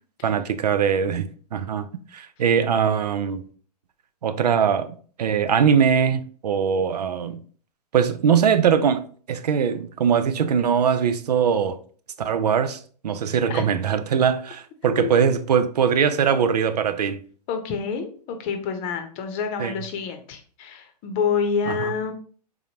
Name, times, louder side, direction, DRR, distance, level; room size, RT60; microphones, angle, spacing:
voice 1, 0.2-3.4 4.2-7.4 7.9-11.8 12.2-17.2 19.6-19.8 21.7-21.9, right 7 dB, 75° right, 0.5 m, -21 dB
voice 2, 14.9-15.2 17.5-22.1, left 6 dB, 35° left, 0.7 m, -28 dB
3.8 x 3.0 x 2.8 m
hypercardioid pair, 115°, 21 cm